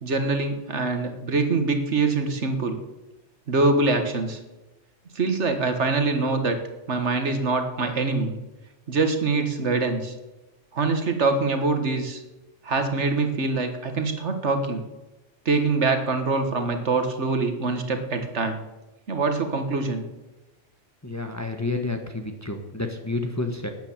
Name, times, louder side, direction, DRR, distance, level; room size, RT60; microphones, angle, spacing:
voice 1, 0.0-2.8 3.5-4.4 5.2-6.6 6.9-8.4 8.9-10.1 10.7-12.2 12.6-14.8 15.5-18.6 19.1-20.0, right 3 dB, 65° right, 7 dB, 1.8 m, -24 dB
voice 2, 21.0-23.7, left 2 dB, 15° left, 5 dB, 1.3 m, -30 dB
12.5 x 9.5 x 7.4 m, 1.0 s
omnidirectional pair, 1.3 m